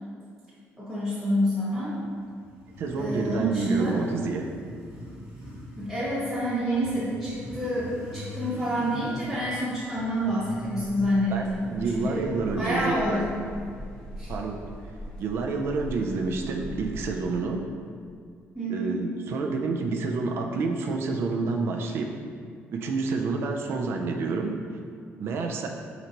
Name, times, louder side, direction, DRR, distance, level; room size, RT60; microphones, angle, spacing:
voice 1, 0.8-1.9 2.9-4.0 5.8-12.3 12.6-13.2 14.2-14.3 18.5-19.0, equal, ahead, -11 dB, 1.1 m, -28 dB
Motorcycle, 1.8-14.5, left 1 dB, 30° right, 1.3 m, -43 dB
voice 2, 2.8-4.5 11.3-13.2 14.3-14.6 15.2-17.7 18.7-22.2 22.7-24.6 25.2-25.7, right 4 dB, 55° right, 3 dB, 0.4 m, -29 dB
sound 1, 10.5-17.2, equal, 20° left, 0.6 m, -41 dB
4.4 x 3.9 x 2.9 m, 2.2 s
cardioid pair, 165°, 5 cm